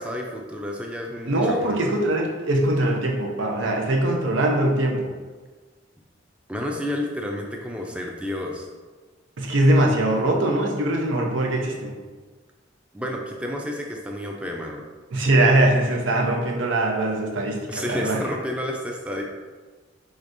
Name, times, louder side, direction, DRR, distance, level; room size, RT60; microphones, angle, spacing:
voice 1, 0.0-2.0 6.5-8.7 12.9-14.8 17.7-19.2, left 1 dB, 5° right, 0 dB, 0.4 m, -30 dB
voice 2, 1.3-5.1 9.4-11.9 15.1-18.2, right 1 dB, 90° right, 0 dB, 0.7 m, -22 dB
5.0 x 3.2 x 2.6 m, 1.4 s
head